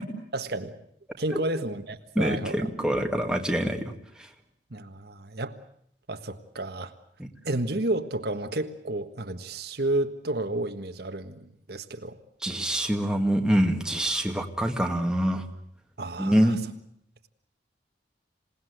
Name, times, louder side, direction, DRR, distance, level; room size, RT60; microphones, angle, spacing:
voice 1, 0.3-0.8 1.2-2.7 4.7-5.5 6.1-6.9 7.4-12.2 16.0-16.5, right 2 dB, 60° right, 7 dB, 1.5 m, -31 dB
voice 2, 2.2-4.3 12.4-15.5 16.2-16.6, equal, 5° right, 3 dB, 2.0 m, -25 dB
27.0 x 19.0 x 8.0 m, 0.70 s
head